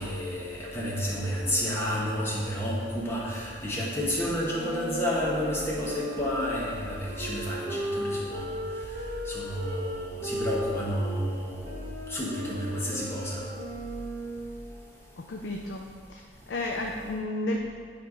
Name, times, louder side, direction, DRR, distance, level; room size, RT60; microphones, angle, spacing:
voice 1, 0.0-8.4 9.3-11.7 12.1-13.4, equal, 15° left, -5 dB, 1.2 m, -30 dB
sound 1, 4.5-11.2 11.6-14.6, equal, 40° right, 1.1 m, -36 dB
voice 2, 15.2-15.8 16.1-16.2 16.5-17.7, left 2 dB, 75° left, 1 dB, 0.5 m, -32 dB
8.7 x 3.4 x 5.4 m, 2.2 s
head